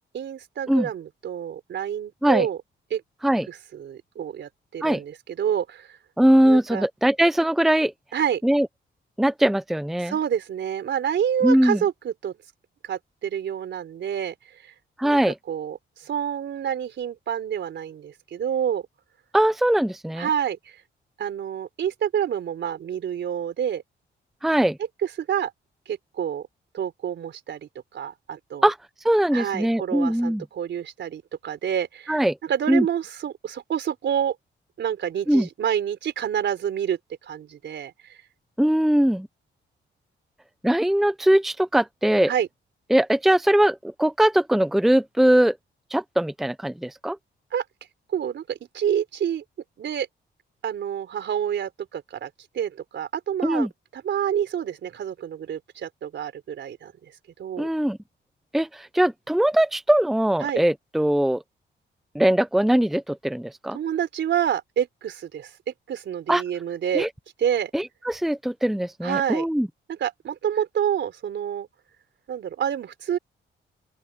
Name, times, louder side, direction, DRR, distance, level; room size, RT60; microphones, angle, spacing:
voice 1, 0.1-2.6 2.9-3.0 3.5-6.0 6.4-6.9 8.1-8.4 10.0-12.3 12.8-14.3 14.6-14.7 15.0-15.2 15.5-18.8 20.2-20.8 21.2-23.8 25.0-25.5 25.9-26.5 26.7-28.7 29.3-34.3 34.8-37.0 37.2-38.2 42.3-42.5 47.5-47.6 48.1-49.4 49.8-50.1 50.6-52.3 52.5-53.7 53.9-56.9 57.4-57.7 60.4-60.6 63.7-67.1 67.4-67.7 69.0-69.4 69.9-71.7 72.3-73.2, right 9 dB, 70° right, 4.0 m, -28 dB
voice 2, 6.2-7.9 8.4-8.7 9.2-10.1 11.4-11.8 15.0-15.4 19.3-20.3 24.4-24.8 28.6-28.8 29.0-30.4 32.1-32.4 32.7-32.9 35.3-35.5 38.6-39.3 40.6-42.3 42.9-45.6 45.9-47.2 53.4-53.7 57.6-58.0 58.5-61.4 62.1-63.8 66.3-66.4 66.9-67.1 67.7-69.7, right 1 dB, ahead, 0.7 m, -21 dB
open air
cardioid pair, 125°, 19 cm